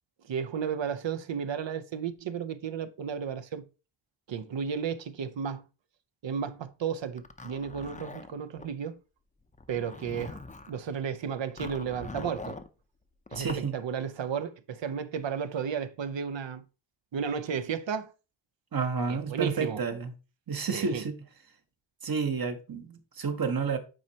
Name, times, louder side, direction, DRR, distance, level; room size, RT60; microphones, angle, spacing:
voice 1, 0.3-3.6 4.3-5.6 6.2-9.0 9.7-10.4 10.7-12.6 13.3-13.5 13.7-16.6 17.1-18.1 19.1-19.8 20.7-21.1, right 7 dB, 70° right, 0.7 m, -33 dB
Zipper (clothing), 7.2-8.7 9.5-10.8 11.6-12.7 13.3-13.7, left 3 dB, 15° left, 0.5 m, -43 dB
voice 2, 13.3-13.7 18.7-20.1 20.5-21.2 22.0-23.8, right 5 dB, 50° right, 1.0 m, -30 dB
9.0 x 4.4 x 2.8 m
wide cardioid pair, 110°, 47 cm